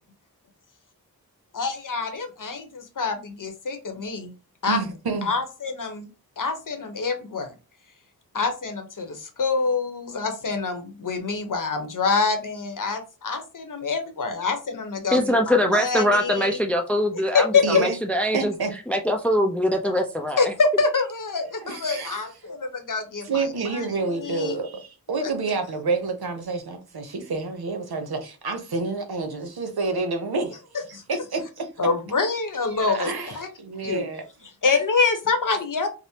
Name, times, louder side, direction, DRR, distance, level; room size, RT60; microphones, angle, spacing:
voice 1, 1.5-4.3 4.6-4.8 5.2-6.1 6.4-7.5 8.3-16.6 17.3-17.6 20.4-24.6 25.2-25.3 30.9-31.0 31.8-33.5 33.8-34.1 34.4-35.9, left 4 dB, 60° left, 0.9 m, -26 dB
voice 2, 4.7-5.3 17.6-17.9 18.3-18.7 21.6-22.2 23.3-30.6 31.1-31.7 32.8-34.2, right 4 dB, 90° right, 0.8 m, -28 dB
voice 3, 15.1-18.5 18.9-20.5, equal, 5° left, 0.5 m, -23 dB
4.9 x 2.0 x 2.8 m
wide cardioid pair, 65°, 36 cm